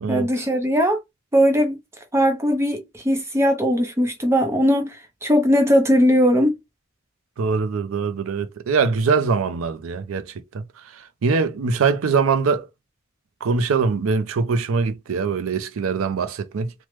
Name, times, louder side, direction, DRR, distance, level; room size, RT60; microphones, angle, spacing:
voice 1, 0.1-1.0 1.3-1.8 2.1-5.0 5.2-6.6, equal, 15° right, 0.5 m, -19 dB
voice 2, 7.4-12.7 13.4-16.7, right 5 dB, 80° right, 0.4 m, -23 dB
3.1 x 2.1 x 3.0 m
head